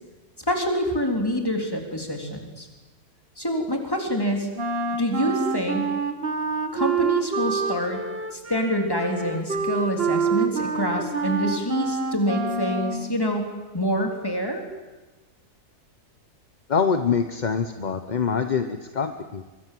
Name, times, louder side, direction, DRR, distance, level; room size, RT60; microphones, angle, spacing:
voice 1, 0.5-2.7 3.4-4.5 4.9-5.9 6.7-8.0 8.3-14.6, equal, 15° left, 3 dB, 3.6 m, -26 dB
Wind instrument woodwind instrument, 4.6-13.2, right 4 dB, 40° right, 1.8 m, -27 dB
voice 2, 16.7-19.5, left 6 dB, 35° left, 8 dB, 0.9 m, -25 dB
24.0 x 23.5 x 7.7 m, 1.2 s
omnidirectional pair, 1.7 m